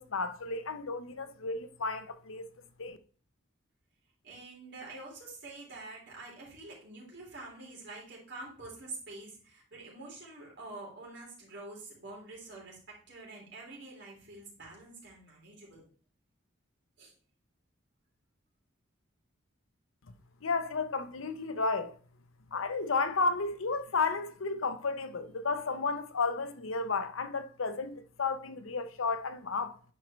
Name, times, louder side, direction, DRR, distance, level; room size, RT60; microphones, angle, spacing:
voice 1, 0.0-2.5 2.8-3.0 20.4-21.9 22.5-29.8, left 4 dB, 85° left, 0.8 m, -32 dB
voice 2, 4.2-15.8 17.0-17.1, right 2 dB, 60° right, 3.5 m, -47 dB
10.0 x 4.6 x 3.1 m
head